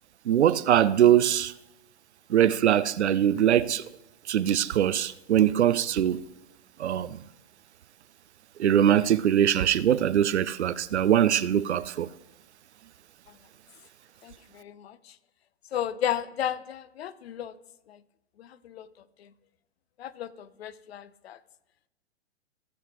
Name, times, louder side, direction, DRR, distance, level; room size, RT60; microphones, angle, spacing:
voice 1, 0.3-1.5 2.3-3.8 4.3-6.2 6.8-7.2 8.6-12.1, right 10 dB, 75° right, 0.6 m, -22 dB
voice 2, 14.2-15.1 15.7-17.5 17.9-18.0 18.4-18.9 19.2-19.3 20.0-21.4, left 10 dB, 65° left, 0.7 m, -34 dB
16.0 x 7.3 x 3.1 m
hypercardioid pair, 115°, 34 cm